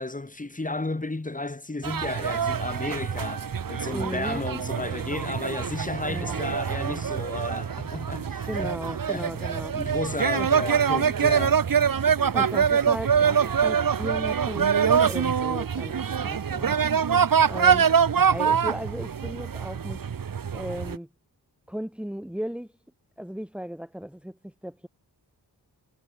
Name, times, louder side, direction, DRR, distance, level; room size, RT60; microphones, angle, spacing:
voice 1, 0.0-8.8 9.1-11.6, left 2 dB, 20° left, 7.5 m, -33 dB
sound 1, 1.8-21.0, right 7 dB, 55° right, 2.0 m, -24 dB
voice 2, 3.9-4.5 6.1-6.5 8.5-9.8 10.4-10.5 12.3-16.8 17.5-17.9 18.2-20.0 20.5-21.1 21.7-22.7 23.2-24.9, equal, 5° right, 4.2 m, -35 dB
wide cardioid pair, 150°, 39 cm